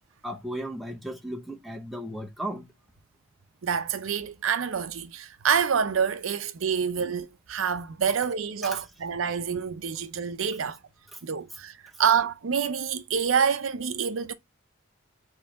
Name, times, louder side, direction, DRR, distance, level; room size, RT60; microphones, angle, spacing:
voice 1, 0.2-2.7 8.6-8.8 11.1-11.2 11.9-12.0, right 1 dB, ahead, 0.8 m, -36 dB
voice 2, 3.6-10.8 11.2-14.3, right 7 dB, 80° right, 0.6 m, -27 dB
4.4 x 3.2 x 3.5 m
head